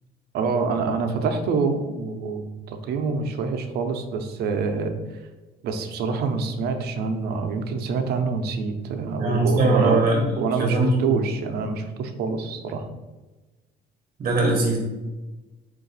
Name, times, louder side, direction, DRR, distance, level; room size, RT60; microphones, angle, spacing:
voice 1, 0.3-5.0 5.6-10.0 10.4-12.9, right 4 dB, 70° right, 7 dB, 0.6 m, -26 dB
voice 2, 9.2-10.2 10.6-11.1 14.2-14.8, right 2 dB, 45° right, 1 dB, 0.9 m, -21 dB
4.8 x 2.6 x 3.9 m, 1.2 s
cardioid pair, 110°, 17 cm